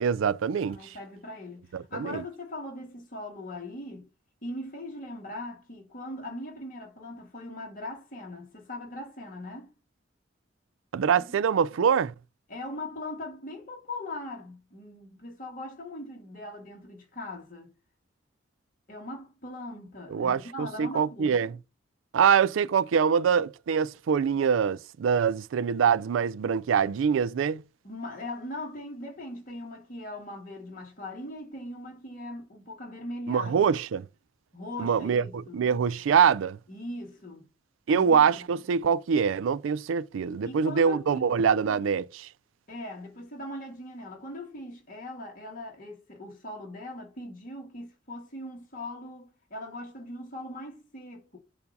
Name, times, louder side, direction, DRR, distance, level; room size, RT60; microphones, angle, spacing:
voice 1, 0.0-1.0 1.7-2.2 10.9-12.1 20.1-21.6 22.1-27.6 33.3-34.0 34.8-36.6 37.9-42.3, right 7 dB, 90° right, 0.4 m, -24 dB
voice 2, 0.7-4.1 4.4-9.7 11.1-11.2 12.5-17.7 18.9-21.4 27.8-33.7 34.5-35.7 36.7-37.5 37.9-38.5 40.4-41.3 42.7-51.4, left 1 dB, 45° left, 1.9 m, -40 dB
6.9 x 2.7 x 5.2 m
head